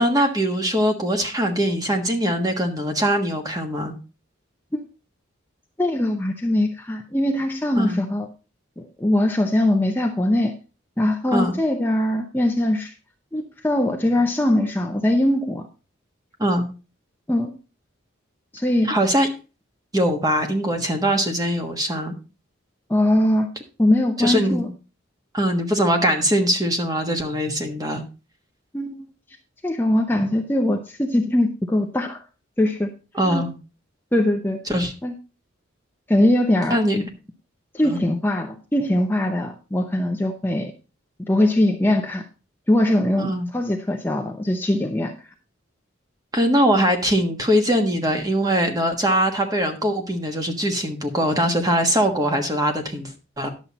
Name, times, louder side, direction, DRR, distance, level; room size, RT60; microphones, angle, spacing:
voice 1, 0.0-3.9 7.8-8.0 11.3-11.6 16.4-16.7 18.8-19.3 19.9-22.1 24.2-24.7 25.3-28.0 33.1-33.5 34.7-34.9 36.7-37.0 37.8-38.0 43.2-43.5 46.3-53.5, equal, 20° right, 4 dB, 1.4 m, -22 dB
voice 2, 5.8-8.3 8.8-10.5 11.0-12.9 13.3-15.7 17.3-17.5 18.5-18.9 22.9-23.5 23.8-24.7 28.7-29.1 29.6-32.2 32.6-32.9 33.3-33.5 34.1-34.6 35.0-35.1 36.1-36.8 37.7-40.7 41.3-42.2 42.7-45.1, left 1 dB, 10° left, 2 dB, 0.7 m, -21 dB
10.5 x 7.3 x 4.1 m, 0.32 s
head